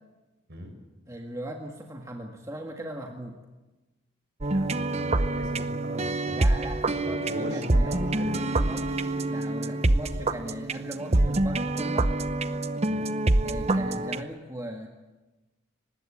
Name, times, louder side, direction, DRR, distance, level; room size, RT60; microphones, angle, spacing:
voice 1, 1.1-3.4 6.3-8.1 8.5-12.1 13.4-14.9, right 1 dB, 15° right, 2 dB, 1.8 m, -38 dB
sound 1, 4.4-14.2, right 2 dB, 30° right, 0.8 m, -26 dB
voice 2, 4.4-6.4 7.0-8.4 12.9-13.1, equal, 55° right, 4 dB, 6.7 m, -38 dB
24.5 x 20.0 x 8.6 m, 1.1 s
head